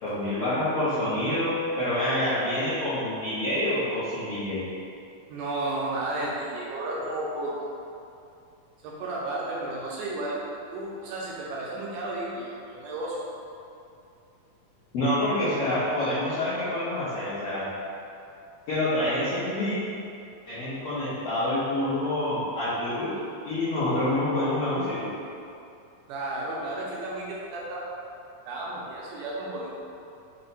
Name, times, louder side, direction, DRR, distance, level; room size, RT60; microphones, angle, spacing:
voice 1, 0.0-4.6 14.9-17.7 18.7-19.8 20.5-23.1 23.4-25.0, left 1 dB, 75° left, -14 dB, 1.4 m, -27 dB
voice 2, 5.3-7.5 8.8-10.4 10.7-13.2 26.1-27.8 28.5-29.7, right 2 dB, 80° right, -5 dB, 2.0 m, -33 dB
5.4 x 2.1 x 4.0 m, 2.6 s
omnidirectional pair, 4.0 m